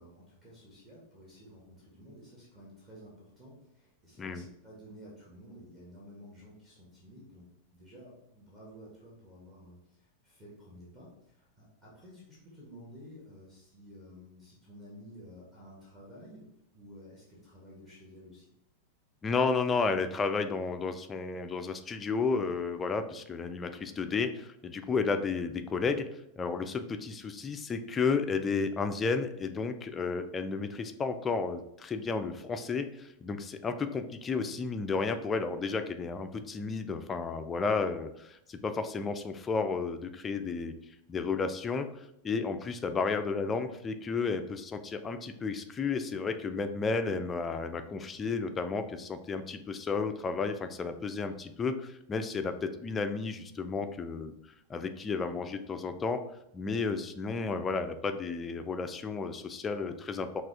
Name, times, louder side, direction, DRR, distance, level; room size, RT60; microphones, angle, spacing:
voice 1, 0.0-16.4 16.7-18.5 42.6-42.8, equal, 25° right, -8 dB, 1.7 m, -52 dB
voice 2, 19.2-26.1 26.4-40.7 41.1-54.3 54.7-56.2 56.5-60.4, left 4 dB, 20° left, 8 dB, 0.4 m, -32 dB
5.8 x 2.5 x 3.4 m, 0.80 s
figure-of-eight pair, 90°, 0 cm